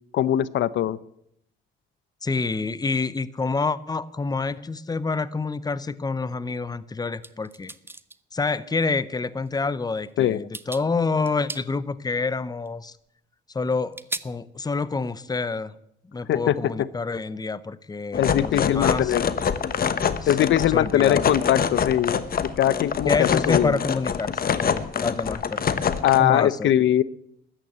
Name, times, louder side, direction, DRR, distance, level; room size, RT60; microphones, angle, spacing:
voice 1, 0.1-1.0 10.2-10.4 16.3-16.9 18.2-19.2 20.3-22.2 22.6-23.8 26.0-27.0, left 11 dB, 70° left, 18 dB, 0.7 m, -21 dB
voice 2, 2.2-7.7 8.3-12.9 13.5-14.0 14.2-15.7 16.1-19.1 20.2-20.3 20.7-21.2 23.1-26.7, left 4 dB, 20° left, 17 dB, 0.8 m, -28 dB
sound 1, 7.2-8.2 9.5-9.6 10.0-10.2 10.5-10.8 11.2-11.7 12.7-12.8 13.9-14.2, right 2 dB, 10° right, 0.7 m, -35 dB
sound 2, 18.1-26.2, left 7 dB, 50° left, 1.1 m, -25 dB
13.5 x 9.2 x 9.6 m, 0.75 s
cardioid pair, 90°, 20 cm